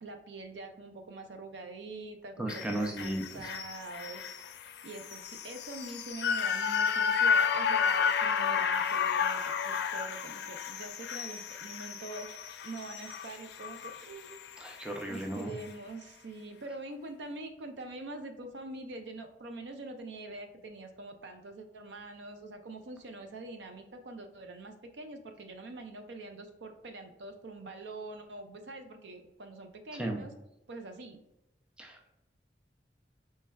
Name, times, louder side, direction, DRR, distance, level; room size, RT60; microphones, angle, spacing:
voice 1, 0.0-4.3 4.8-12.4 12.6-14.4 15.1-30.3 30.7-31.2, right 2 dB, 80° right, 6 dB, 0.5 m, -44 dB
voice 2, 2.4-3.4 14.6-15.5 30.0-30.2 31.8-32.1, right 1 dB, 5° right, 1 dB, 0.4 m, -35 dB
sound 1, 2.5-14.8 15.2-15.3, left 6 dB, 65° left, 0.3 m, -32 dB
4.4 x 3.2 x 2.2 m, 0.90 s
head